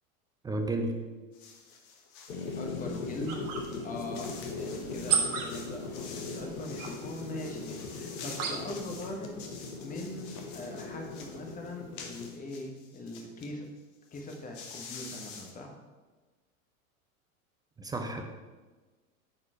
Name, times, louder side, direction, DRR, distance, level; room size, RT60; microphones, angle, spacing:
voice 1, 0.4-1.0 17.8-18.2, right 2 dB, 10° right, 4 dB, 0.4 m, -32 dB
sound 1, 1.3-2.4 2.9-13.5 13.8-13.9 14.1-15.5, left 5 dB, 45° left, 1.2 m, -48 dB
sound 2, 2.3-12.3, left 3 dB, 70° left, 1.0 m, -40 dB
sound 3, 2.4-8.9, right 7 dB, 60° right, 1.4 m, -37 dB
voice 2, 2.6-9.3 9.8-13.7 14.1-15.7, left 2 dB, 20° left, 2 dB, 1.2 m, -41 dB
8.9 x 4.4 x 4.4 m, 1.3 s
figure-of-eight pair, 85°, 42 cm